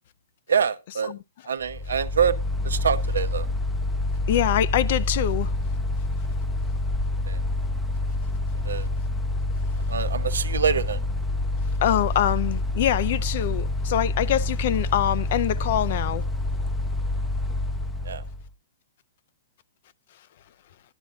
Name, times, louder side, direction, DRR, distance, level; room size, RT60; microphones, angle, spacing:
voice 1, 0.5-1.1 1.5-3.5 7.3-7.4 8.6-8.9 9.9-11.0 18.0-18.2, right 7 dB, 80° right, 0.7 m, -25 dB
Mechanical fan, 1.6-18.5, left 2 dB, 5° left, 0.6 m, -27 dB
voice 2, 4.3-5.5 11.8-16.2, left 11 dB, 55° left, 0.5 m, -24 dB
10.5 x 10.0 x 2.4 m
hypercardioid pair, 130°, 0 cm